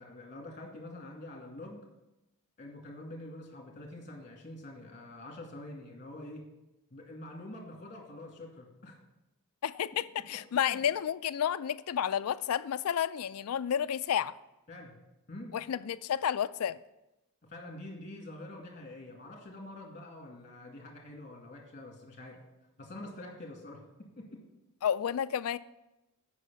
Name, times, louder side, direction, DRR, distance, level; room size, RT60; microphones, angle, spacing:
voice 1, 0.0-1.8 2.6-6.4 6.9-9.0 10.2-10.8 14.7-15.0 15.3-15.6 17.5-22.4 22.8-24.4, left 1 dB, 35° left, 2.1 m, -46 dB
voice 2, 9.6-14.3 15.5-16.8 24.8-25.6, left 9 dB, 75° left, 0.4 m, -31 dB
8.3 x 5.4 x 6.8 m
head